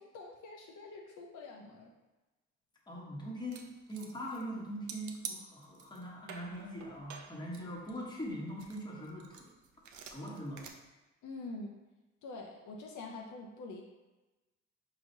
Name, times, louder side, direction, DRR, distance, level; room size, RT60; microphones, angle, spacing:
voice 1, 0.0-2.0 11.2-11.8 12.2-13.8, left 3 dB, 75° left, 0 dB, 0.7 m, -46 dB
voice 2, 2.9-9.5 10.1-10.7, equal, 15° left, -4 dB, 1.1 m, -42 dB
sound 1, 3.5-4.5 4.9-6.0 6.3-8.3 8.6-10.7, right 6 dB, 75° right, 0.5 m, -48 dB
4.8 x 3.1 x 2.7 m, 1.1 s
cardioid pair, 90°, 30 cm